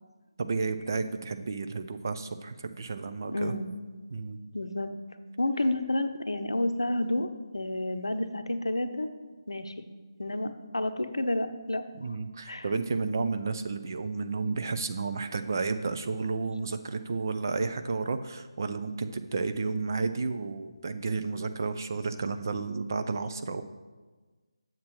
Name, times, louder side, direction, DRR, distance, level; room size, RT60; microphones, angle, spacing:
voice 1, 0.4-3.5 4.1-4.4 12.0-23.6, right 4 dB, 45° right, 9 dB, 0.5 m, -32 dB
voice 2, 3.3-3.7 4.5-4.9 5.4-9.1 9.5-9.7 10.2-12.2 12.5-12.7, left 1 dB, 75° left, 9 dB, 0.7 m, -30 dB
9.5 x 7.3 x 3.1 m, 1.3 s
figure-of-eight pair, 155°, 3 cm